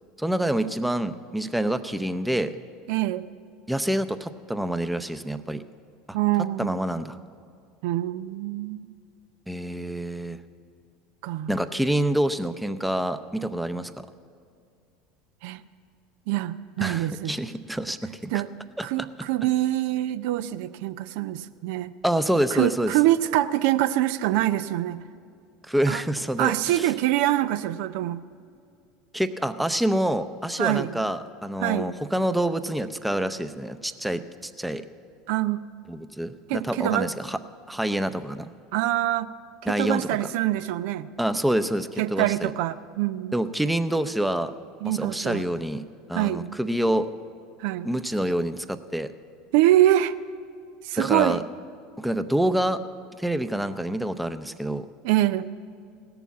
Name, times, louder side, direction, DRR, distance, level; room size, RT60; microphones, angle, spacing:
voice 1, 0.2-2.5 3.7-5.6 6.1-6.2 6.6-7.2 9.5-10.4 11.5-13.9 16.8-18.3 18.8-18.9 22.0-22.9 25.6-26.9 29.1-34.8 35.9-37.4 37.7-38.5 39.6-40.3 41.2-42.5 43.3-44.5 44.8-47.1 47.8-49.1 51.0-51.4 52.0-52.8 53.2-54.9, right 1 dB, 5° right, 10 dB, 0.6 m, -27 dB
voice 2, 2.9-3.3 6.1-6.9 7.8-8.9 11.2-11.6 15.4-15.6 16.3-17.4 18.3-18.5 18.8-21.9 22.5-25.0 25.9-26.0 26.4-28.2 30.6-31.0 31.6-31.9 35.3-35.6 36.5-37.1 38.7-39.3 39.6-41.1 42.0-43.3 44.8-45.5 46.1-46.4 47.6-47.9 49.5-50.1 50.8-51.4 55.0-55.5, right 14 dB, 70° right, 14 dB, 0.5 m, -24 dB
17.0 x 7.0 x 8.3 m, 2.4 s
hypercardioid pair, 80°, 0 cm